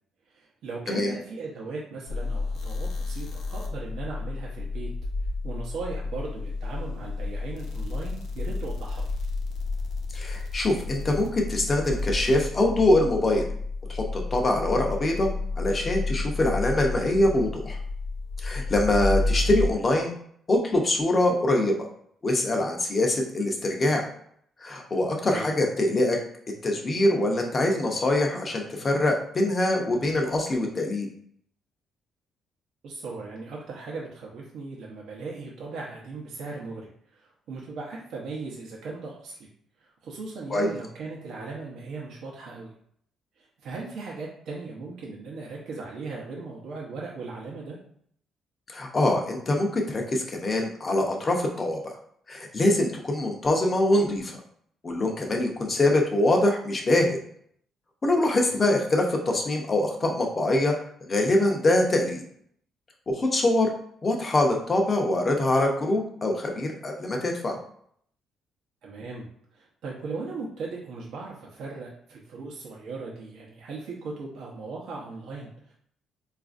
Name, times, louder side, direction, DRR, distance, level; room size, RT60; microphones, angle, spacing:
voice 1, 0.3-4.9 5.4-9.0 25.3-25.5 32.8-39.5 39.8-42.7 43.4-47.8 58.5-58.6 68.8-69.3 69.5-75.7, right 3 dB, 65° right, -3 dB, 0.7 m, -38 dB
sound 1, 2.1-19.7, left 3 dB, 65° left, 0.6 m, -31 dB
voice 2, 10.1-13.4 13.9-15.3 15.6-17.8 18.4-20.1 20.5-21.7 22.2-24.0 24.6-26.2 26.6-31.1 40.5-40.7 48.7-51.9 52.3-54.4 54.8-57.2 58.0-60.7 61.1-62.2 63.1-63.7 64.0-67.5, left 1 dB, 25° left, 2 dB, 0.6 m, -24 dB
4.1 x 2.5 x 2.4 m, 0.65 s
cardioid pair, 160°, 0 cm